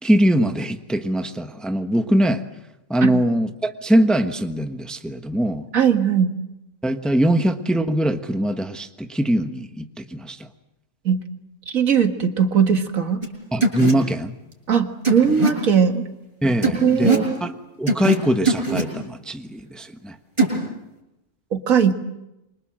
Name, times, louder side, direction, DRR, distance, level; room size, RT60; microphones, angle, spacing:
voice 1, 0.0-2.4 2.9-5.7 6.8-10.5 13.5-14.3 16.4-20.1, right 1 dB, ahead, 7 dB, 1.2 m, -22 dB
voice 2, 5.7-6.3 11.1-11.2 11.7-13.2 14.7-16.0 16.8-17.4 21.5-21.9, right 7 dB, 75° right, 7 dB, 2.2 m, -19 dB
sound 1, 13.2-13.3 13.6-13.9 15.0-15.5 16.6-17.3 17.9-18.2 18.4-18.8 20.4-20.6, right 2 dB, 20° right, 6.9 m, -20 dB
27.5 x 25.0 x 7.7 m, 0.92 s
omnidirectional pair, 1.4 m